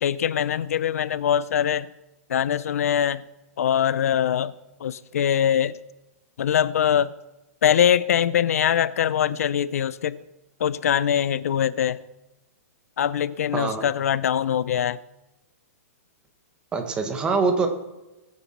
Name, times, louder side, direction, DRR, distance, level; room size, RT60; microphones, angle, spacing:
voice 1, 0.0-1.9 2.3-3.2 3.6-4.5 4.8-5.7 6.4-7.1 7.6-10.2 10.6-12.0 13.0-15.0, left 9 dB, 70° left, 17 dB, 0.5 m, -22 dB
voice 2, 13.5-13.9 16.7-17.7, right 4 dB, 10° right, 6 dB, 1.1 m, -24 dB
21.5 x 9.6 x 4.3 m, 1.0 s
hypercardioid pair, 170°, 8 cm